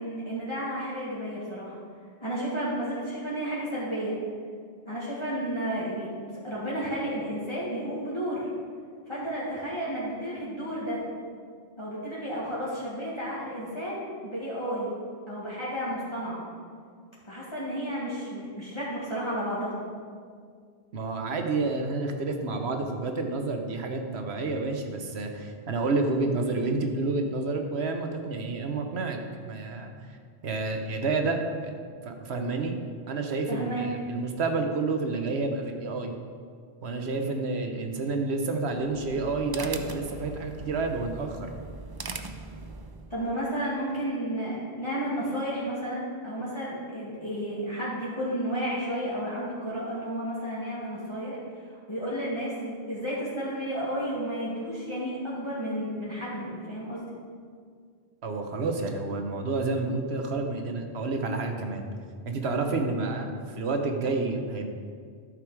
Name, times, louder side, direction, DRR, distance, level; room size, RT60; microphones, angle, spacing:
voice 1, 0.0-1.7 2.2-4.2 4.9-6.2 6.4-8.5 9.1-11.0 11.8-14.9 15.3-16.4 17.2-19.7 33.5-33.9 43.1-57.1, equal, 25° left, -8 dB, 1.7 m, -32 dB
voice 2, 20.9-29.9 30.4-31.7 32.0-32.8 33.1-36.1 36.8-41.5 58.2-61.8 62.2-64.7, right 3 dB, 75° right, 4 dB, 1.2 m, -29 dB
sound 1, 38.7-43.2, right 3 dB, 35° right, 0.4 m, -40 dB
12.0 x 6.7 x 4.7 m, 2.1 s
omnidirectional pair, 1.1 m